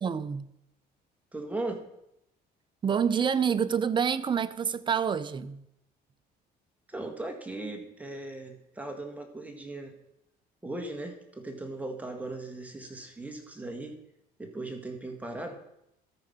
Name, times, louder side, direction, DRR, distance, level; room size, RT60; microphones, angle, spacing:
voice 1, 0.0-0.5 2.8-5.6, right 7 dB, 30° right, 0.5 m, -27 dB
voice 2, 1.3-1.9 6.9-10.0 10.6-14.0 14.4-15.6, right 2 dB, 10° right, 1.7 m, -38 dB
13.5 x 4.9 x 5.6 m
cardioid pair, 110°, 17 cm